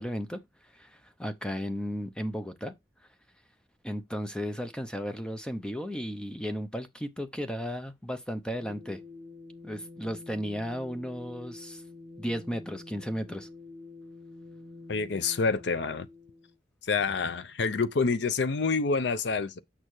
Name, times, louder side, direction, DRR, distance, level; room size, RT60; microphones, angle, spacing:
voice 1, 0.0-2.7 3.8-9.0 9.6-11.8 12.2-13.5, equal, 5° left, 0.5 m, -35 dB
sound 1, 8.6-16.6, left 2 dB, 40° right, 1.1 m, -47 dB
voice 2, 14.9-16.1 16.9-19.6, left 4 dB, 65° left, 0.6 m, -27 dB
7.3 x 6.5 x 3.1 m
head